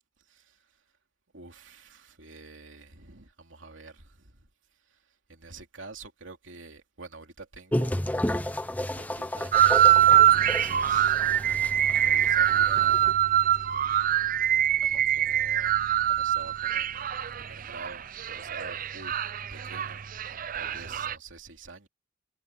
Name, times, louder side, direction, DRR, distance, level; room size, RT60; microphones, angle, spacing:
voice 1, 0.3-0.6 1.3-4.5 4.9-5.0 5.3-8.1 9.0-11.2 12.0-13.0 14.8-15.7 16.1-19.2 19.5-20.0 20.5-21.9, right 3 dB, 75° right, 3.1 m, -47 dB
sound 1, 7.7-13.1, left 1 dB, 10° left, 1.0 m, -32 dB
sound 2, 9.5-21.1, right 11 dB, 45° right, 0.6 m, -24 dB
head